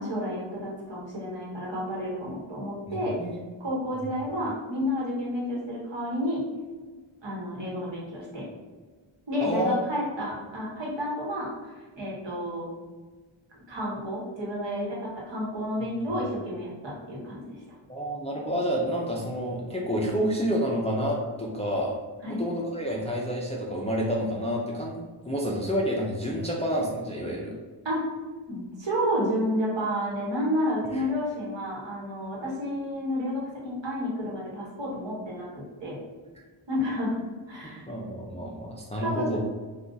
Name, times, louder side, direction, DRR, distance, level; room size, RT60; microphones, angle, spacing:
voice 1, 0.0-3.2 3.6-6.4 7.2-8.5 9.3-12.7 13.7-17.5 22.2-22.4 27.8-28.0 28.5-36.0 36.7-37.1 37.5-37.9 39.0-39.4, equal, 60° right, -5 dB, 1.2 m, -30 dB
voice 2, 2.9-3.4 4.0-4.1 9.4-9.8 17.9-22.0 22.3-27.5 30.9-31.0 37.9-39.4, equal, 15° left, -3 dB, 0.4 m, -29 dB
2.5 x 2.4 x 3.7 m, 1.4 s
wide cardioid pair, 80°, 50 cm